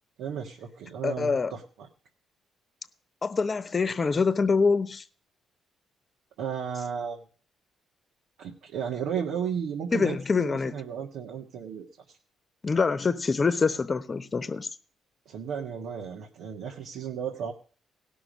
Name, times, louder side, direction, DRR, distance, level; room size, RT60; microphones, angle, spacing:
voice 1, 0.2-1.9 6.4-7.2 8.4-11.9 15.2-17.5, right 7 dB, 85° right, 1.6 m, -34 dB
voice 2, 1.0-1.5 3.2-5.0 9.9-10.7 12.6-14.7, left 4 dB, 35° left, 1.0 m, -25 dB
17.0 x 6.2 x 6.2 m
cardioid pair, 90°, 0 cm